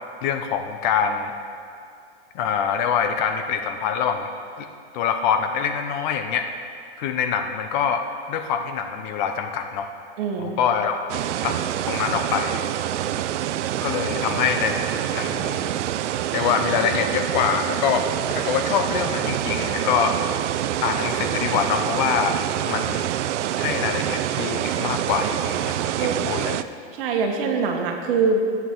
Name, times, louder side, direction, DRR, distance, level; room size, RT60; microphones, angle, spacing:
voice 1, 0.2-1.3 2.3-4.3 4.6-4.7 4.9-6.5 7.0-9.9 10.4-11.0 11.4-11.6 11.8-12.6 13.8-15.7 16.3-18.1 18.3-20.2 20.8-22.4 22.6-23.1 23.6-26.6, left 7 dB, 40° left, 7 dB, 0.7 m, -25 dB
voice 2, 10.2-10.6 26.0-26.2 26.9-28.4, right 5 dB, 50° right, 3 dB, 1.5 m, -23 dB
sound 1, 11.1-26.6, right 12 dB, 75° right, 0.5 m, -26 dB
14.0 x 8.2 x 3.8 m, 2.5 s
hypercardioid pair, 140°, 36 cm